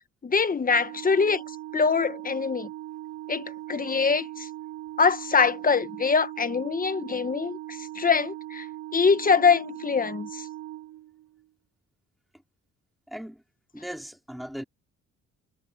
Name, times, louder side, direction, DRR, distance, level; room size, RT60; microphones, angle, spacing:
voice 1, 0.2-1.4 1.7-2.7 3.3-4.5 5.0-8.7 8.9-10.4, left 5 dB, 30° left, 1.3 m, -24 dB
Organ, 0.6-11.5, right 14 dB, 50° right, 1.7 m, -40 dB
voice 2, 13.1-13.4 13.7-14.6, equal, ahead, 4.3 m, -38 dB
cardioid pair, 90°, 30 cm